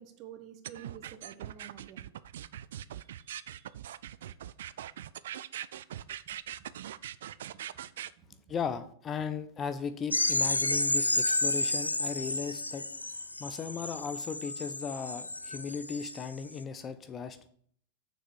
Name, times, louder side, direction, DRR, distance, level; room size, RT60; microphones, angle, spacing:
voice 1, 0.0-2.1 3.0-3.8 6.6-6.7 7.4-7.5 8.2-8.6 13.3-13.6, right 9 dB, 40° right, 7 dB, 1.2 m, -51 dB
sound 1, 0.6-8.1, right 11 dB, 60° right, 0.3 m, -41 dB
voice 2, 8.5-12.8 13.4-17.5, left 6 dB, 25° left, 11 dB, 0.6 m, -37 dB
sound 2, 10.1-16.2, left 2 dB, 85° left, 0.4 m, -31 dB
7.2 x 6.2 x 6.3 m, 0.63 s
figure-of-eight pair, 90°, 0 cm